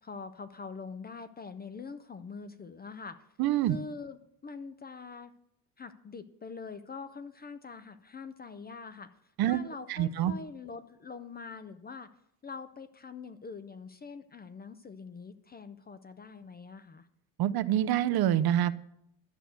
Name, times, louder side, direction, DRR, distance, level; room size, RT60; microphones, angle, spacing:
voice 1, 0.0-3.3 3.6-5.3 5.8-9.1 9.4-12.1 12.4-17.1, left 4 dB, 25° left, 11 dB, 0.4 m, -44 dB
voice 2, 3.4-3.8 9.4-9.6 9.9-10.3 17.4-18.7, right 12 dB, 55° right, 13 dB, 0.6 m, -26 dB
11.5 x 6.4 x 8.0 m, 0.76 s
cardioid pair, 160°, 44 cm